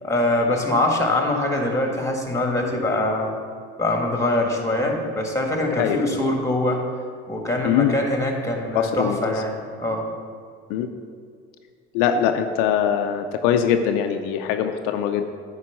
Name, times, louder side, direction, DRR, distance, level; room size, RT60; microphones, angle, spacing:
voice 1, 0.0-3.3 3.8-6.8 7.3-10.1, left 1 dB, 10° left, 2 dB, 1.9 m, -23 dB
voice 2, 5.7-6.0 7.6-7.9 8.7-9.2 10.7-10.9 11.9-15.3, left 8 dB, 80° left, 7 dB, 0.5 m, -22 dB
9.4 x 4.8 x 6.0 m, 2.1 s
hypercardioid pair, 60°, 31 cm